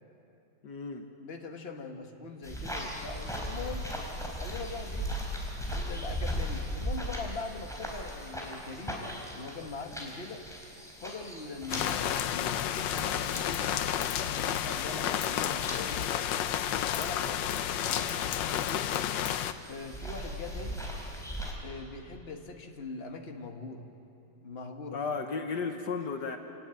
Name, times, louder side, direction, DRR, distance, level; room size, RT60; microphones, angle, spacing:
voice 1, 0.6-1.1 19.0-19.2 24.9-26.4, left 5 dB, 70° left, 5 dB, 1.7 m, -34 dB
voice 2, 1.2-3.9 4.4-5.1 5.7-10.4 11.0-16.1 16.9-19.0 19.7-20.8 21.6-23.8 24.4-25.2, left 4 dB, 35° left, 3 dB, 1.8 m, -42 dB
sound 1, 2.4-21.5, equal, ahead, 4.3 m, -39 dB
sound 2, 11.7-19.5, left 10 dB, 85° left, 1.5 m, -31 dB
28.0 x 18.5 x 9.1 m, 2.8 s
omnidirectional pair, 1.9 m